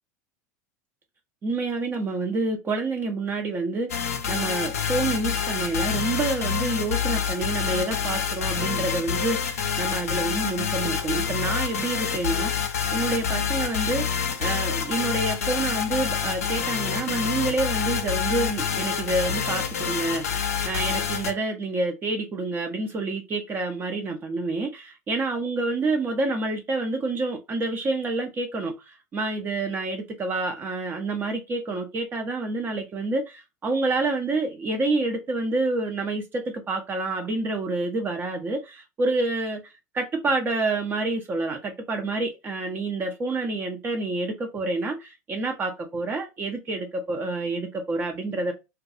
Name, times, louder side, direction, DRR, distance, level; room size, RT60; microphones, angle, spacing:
voice 1, 1.4-48.5, right 2 dB, 25° right, 0.5 m, -28 dB
sound 1, 3.9-21.3, left 7 dB, 70° left, 0.4 m, -27 dB
2.3 x 2.2 x 2.5 m
figure-of-eight pair, 75°, 8 cm